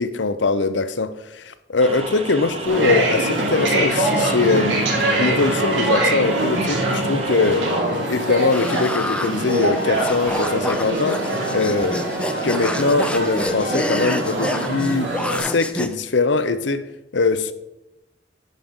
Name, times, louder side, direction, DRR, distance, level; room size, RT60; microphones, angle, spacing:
voice 1, 0.0-4.8 5.2-7.7 8.1-11.2 11.5-12.0 12.4-17.5, left 3 dB, 80° left, 0.7 m, -22 dB
sound 1, 1.8-7.8, right 3 dB, 35° right, 1.1 m, -32 dB
sound 2, 2.6-15.4, right 1 dB, 90° right, 3.3 m, -23 dB
sound 3, 8.5-15.9, left 1 dB, 5° left, 0.5 m, -29 dB
11.0 x 5.2 x 7.2 m
head